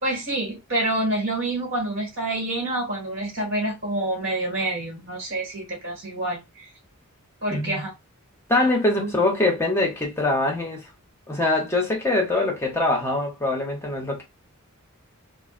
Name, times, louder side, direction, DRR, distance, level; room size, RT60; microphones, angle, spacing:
voice 1, 0.0-6.7 7.4-7.9 9.0-9.1, right 1 dB, 60° right, 1.8 m, -27 dB
voice 2, 7.5-7.9 8.5-10.9 11.3-14.2, left 2 dB, 10° left, 0.8 m, -23 dB
4.6 x 2.4 x 2.5 m
head